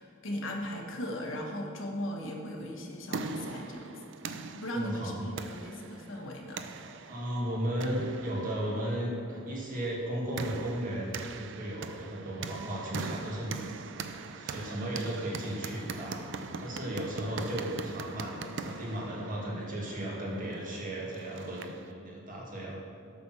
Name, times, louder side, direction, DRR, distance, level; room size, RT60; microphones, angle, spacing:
voice 1, 0.0-6.7, equal, 65° left, 1 dB, 1.3 m, -38 dB
sound 1, 2.7-21.9, right 4 dB, 60° right, 0.5 m, -42 dB
voice 2, 4.7-5.3 7.1-13.6 14.1-16.3 16.6-22.8, right 1 dB, 40° right, -3 dB, 1.8 m, -35 dB
8.4 x 6.3 x 6.2 m, 2.4 s
head